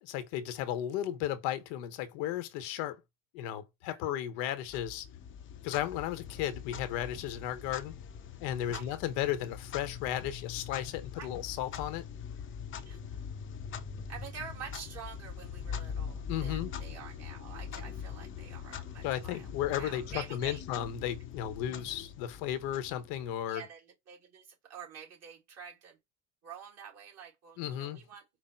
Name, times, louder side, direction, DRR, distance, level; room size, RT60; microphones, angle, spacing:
voice 1, 0.0-3.0 3.3-5.1 5.6-8.0 8.4-12.0 16.3-16.7 19.0-23.7 27.6-28.0, left 11 dB, 80° left, 1.0 m, -34 dB
Clock, 4.7-23.4, left 7 dB, 35° left, 0.6 m, -42 dB
voice 2, 12.9-13.2 14.1-19.5 19.7-20.6 23.5-26.0 26.4-28.2, right 7 dB, 45° right, 2.0 m, -48 dB
4.8 x 2.1 x 4.3 m
cardioid pair, 130°, 36 cm